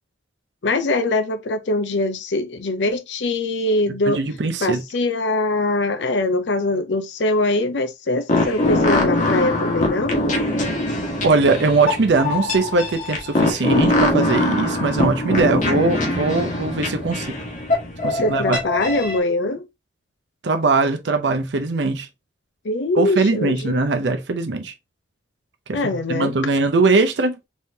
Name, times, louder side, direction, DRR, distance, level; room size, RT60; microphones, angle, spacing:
voice 1, 0.6-4.2 4.6-10.2 18.2-19.6 22.6-23.8 25.7-26.3, left 2 dB, 75° left, 0.6 m, -22 dB
voice 2, 4.1-4.8 11.2-17.4 18.0-18.6 20.4-22.1 23.0-24.7 25.7-25.8 26.1-27.4, right 3 dB, 75° right, 0.6 m, -20 dB
sound 1, 8.3-19.2, left 1 dB, 45° left, 1.4 m, -22 dB
4.1 x 3.7 x 2.7 m
head